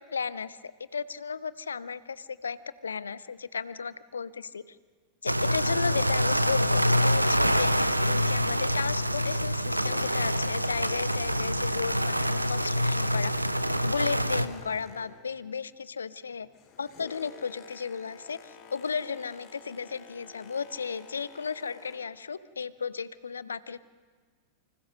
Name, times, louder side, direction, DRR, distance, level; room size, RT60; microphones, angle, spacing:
voice 1, 0.1-0.6 0.9-2.6 2.8-4.6 5.2-7.7 8.1-13.3 13.8-16.5 16.8-23.8, left 6 dB, 70° left, 17 dB, 0.8 m, -34 dB
sound 1, 5.3-14.5, equal, 85° right, 0.9 m, -26 dB
Boat Water vehicle, 9.5-15.5 15.8-22.2 22.8-23.0, left 6 dB, 40° left, 3.4 m, -49 dB
28.5 x 25.5 x 6.4 m, 1.5 s
figure-of-eight pair, 90°, 0 cm